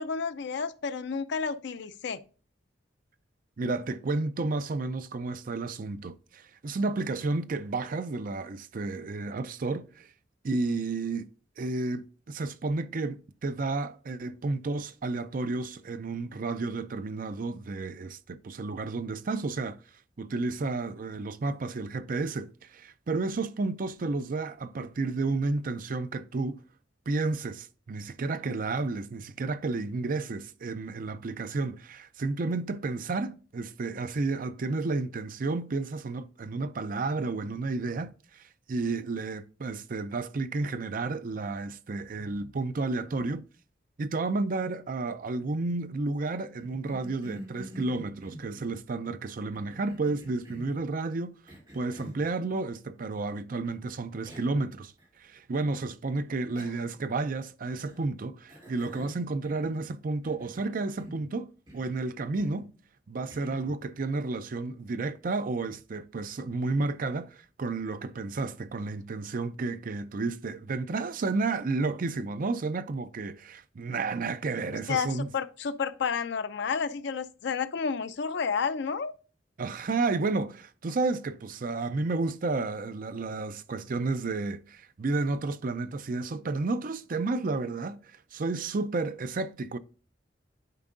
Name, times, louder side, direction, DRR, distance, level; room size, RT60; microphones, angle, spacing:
voice 1, 0.0-2.2 74.9-79.1, left 5 dB, 65° left, 0.5 m, -31 dB
voice 2, 3.6-10.1 10.4-11.3 11.6-19.8 20.2-26.6 27.1-38.4 38.7-43.4 44.0-51.4 51.7-54.9 55.2-62.7 63.1-75.3 79.6-89.8, right 3 dB, 50° right, 0.5 m, -31 dB
Cough, 46.6-48.8 49.5-50.8 51.5-52.3 53.6-53.8 54.2-54.6 55.0-55.1 56.5-57.1 57.7-58.1 58.5-59.9 60.2-61.3 61.7-62.0 62.4-62.7 63.3-63.8, right 1 dB, 25° right, 3.2 m, -47 dB
10.5 x 4.5 x 2.6 m
head